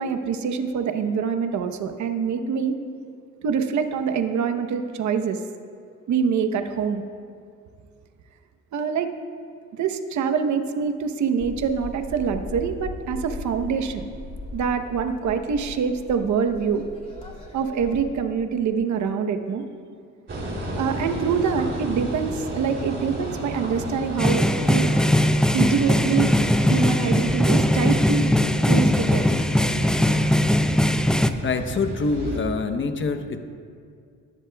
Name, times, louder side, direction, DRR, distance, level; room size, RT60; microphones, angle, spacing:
voice 1, 0.0-2.7 3.4-5.4 6.1-7.0 8.7-9.1 9.8-14.0 14.5-16.8 17.5-19.6 20.7-24.9 25.5-26.3 26.7-28.3 28.7-29.4, right 6 dB, 70° right, 7 dB, 1.0 m, -25 dB
sound 1, 11.4-18.0, left 2 dB, 20° left, 2.6 m, -38 dB
sound 2, 20.3-32.4, right 1 dB, 40° right, 3.1 m, -33 dB
sound 3, 24.2-31.3, left 1 dB, ahead, 0.4 m, -20 dB
voice 2, 31.4-33.4, left 4 dB, 40° left, 7 dB, 0.9 m, -25 dB
21.0 x 11.0 x 2.3 m, 2.3 s
cardioid pair, 90°, 30 cm